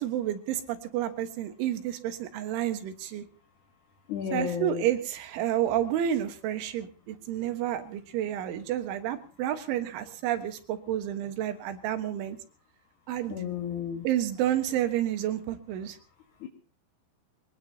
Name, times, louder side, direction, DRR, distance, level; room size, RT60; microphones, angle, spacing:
voice 1, 0.0-3.3 4.3-12.4 13.1-13.4 14.0-16.0, right 11 dB, 80° right, 8 dB, 3.9 m, -30 dB
voice 2, 4.1-4.8 13.3-14.1 16.4-16.5, left 7 dB, 60° left, 3 dB, 2.2 m, -32 dB
23.0 x 19.5 x 2.9 m, 0.38 s
omnidirectional pair, 5.4 m